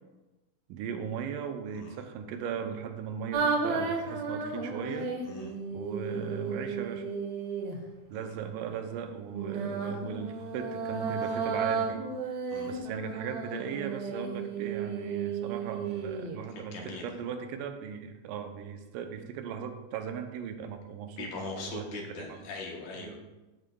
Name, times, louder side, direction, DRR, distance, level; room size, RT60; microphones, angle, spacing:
voice 1, 0.7-5.1 5.7-7.1 8.1-12.4 12.7-22.5 23.0-23.2, right 7 dB, 85° right, 6 dB, 2.2 m, -38 dB
sound 1, 3.3-7.8 9.3-16.4, right 4 dB, 70° right, 1.8 m, -33 dB
voice 2, 16.6-17.1 21.2-23.2, left 4 dB, 75° left, 0 dB, 2.5 m, -41 dB
11.5 x 5.1 x 2.3 m, 1.1 s
omnidirectional pair, 3.7 m